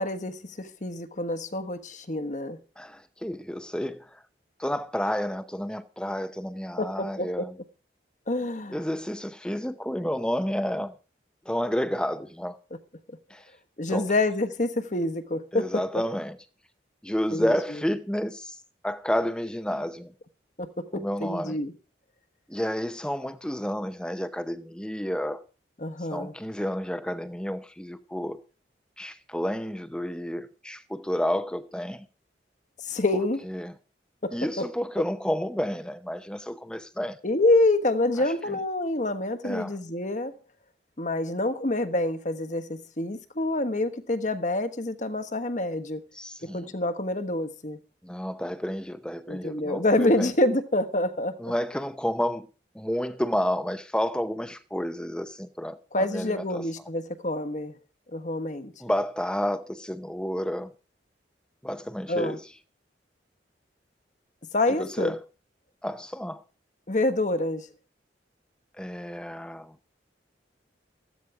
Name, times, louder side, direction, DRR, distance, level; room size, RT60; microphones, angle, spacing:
voice 1, 0.0-2.6 6.8-7.5 8.3-8.8 13.8-15.8 17.3-17.5 20.6-21.7 25.8-26.3 32.8-33.4 34.2-34.7 37.2-40.3 41.0-46.0 46.4-47.8 49.3-51.5 55.9-57.8 58.1-58.7 62.1-62.4 64.5-65.1 66.9-67.7, left 2 dB, 40° left, 1.3 m, -27 dB
voice 2, 2.8-4.2 4.6-7.5 8.7-10.9 11.5-12.6 13.3-13.4 13.9-14.1 15.5-16.4 17.0-18.6 18.8-20.1 20.9-21.6 22.5-25.4 26.1-28.4 29.0-32.1 33.5-33.7 34.3-37.2 38.5-38.6 39.4-39.8 46.1-46.7 48.0-50.3 51.4-52.5 52.7-56.6 58.8-60.7 61.6-62.4 64.8-65.2 65.8-66.4 68.8-69.7, equal, 5° left, 0.7 m, -30 dB
14.5 x 12.5 x 4.9 m
head